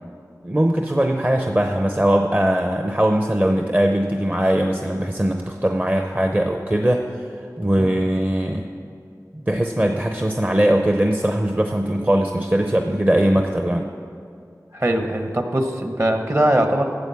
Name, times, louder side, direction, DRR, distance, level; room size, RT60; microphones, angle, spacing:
voice 1, 0.4-7.0 7.6-8.7 9.5-13.9, right 1 dB, 25° right, 3 dB, 0.7 m, -20 dB
voice 2, 14.7-16.9, right 1 dB, 45° right, 5 dB, 1.2 m, -21 dB
12.0 x 7.7 x 7.0 m, 2.3 s
wide cardioid pair, 45°, 7 cm